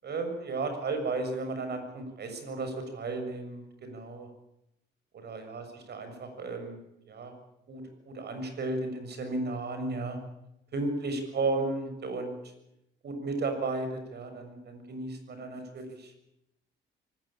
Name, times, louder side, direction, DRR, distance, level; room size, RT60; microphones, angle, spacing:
voice 1, 0.0-4.3 5.2-6.8 7.1-7.3 7.7-10.2 10.7-12.4 13.0-16.1, right 3 dB, 55° right, 6 dB, 6.9 m, -34 dB
24.0 x 20.0 x 8.9 m, 0.85 s
cardioid pair, 90°, 20 cm